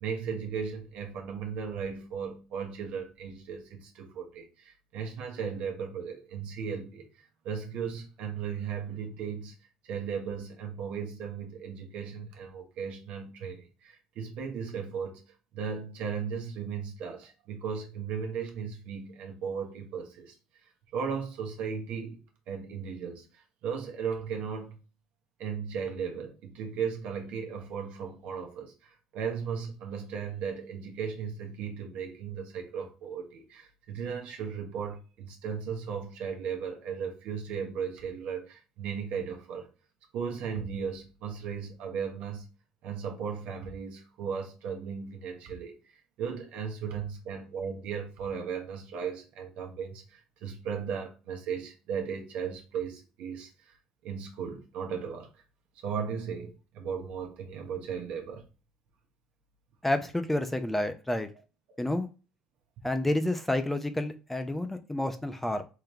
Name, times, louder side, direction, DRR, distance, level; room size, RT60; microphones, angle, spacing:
voice 1, 0.0-9.5 9.8-15.2 15.5-20.3 20.9-24.8 25.4-39.7 40.1-42.4 42.8-45.7 46.2-53.7 54.0-55.3 55.8-58.4, right 6 dB, 65° right, 1.0 m, -36 dB
voice 2, 59.8-61.3 61.8-62.1 62.8-65.6, left 1 dB, 10° left, 0.6 m, -29 dB
3.8 x 3.2 x 2.9 m
hypercardioid pair, 65°, 2 cm